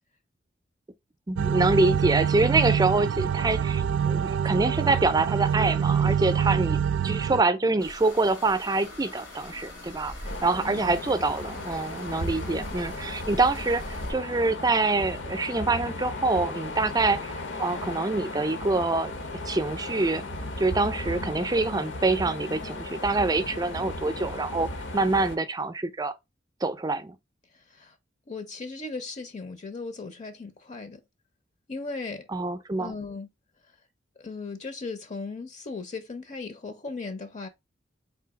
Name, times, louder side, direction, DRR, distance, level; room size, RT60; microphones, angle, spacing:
voice 1, 1.3-6.8 7.0-10.1 10.4-13.8 14.1-19.1 19.5-20.2 20.6-26.1 26.6-27.2 32.3-32.9, right 3 dB, 20° right, 0.5 m, -25 dB
sound 1, 1.4-7.4, right 8 dB, 90° right, 0.3 m, -25 dB
sound 2, 7.8-14.1, left 1 dB, 85° left, 1.7 m, -41 dB
sound 3, 10.2-25.4, left 2 dB, 70° left, 0.9 m, -36 dB
voice 2, 12.4-12.7 27.8-27.9 28.3-31.0 31.7-32.3 32.8-33.3 34.2-37.5, left 3 dB, 40° left, 0.6 m, -37 dB
3.8 x 2.8 x 4.7 m
head